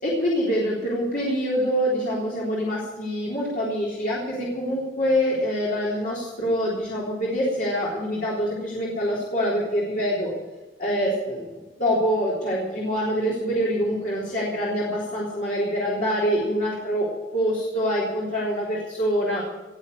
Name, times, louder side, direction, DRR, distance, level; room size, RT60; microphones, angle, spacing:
voice 1, 0.0-10.3 10.8-17.1 17.3-19.4, equal, 45° left, -6 dB, 3.7 m, -25 dB
18.5 x 7.2 x 9.4 m, 1.2 s
head